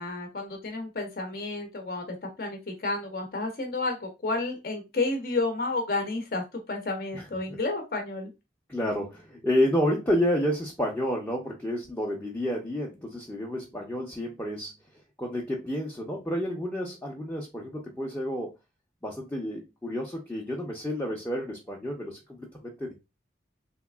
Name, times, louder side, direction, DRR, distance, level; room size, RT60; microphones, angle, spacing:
voice 1, 0.0-8.3, left 3 dB, 55° left, 3 dB, 0.7 m, -31 dB
voice 2, 7.1-7.6 8.7-14.7 15.2-18.5 19.0-22.9, equal, 10° left, -2 dB, 0.5 m, -30 dB
3.3 x 2.8 x 2.2 m, 0.24 s
head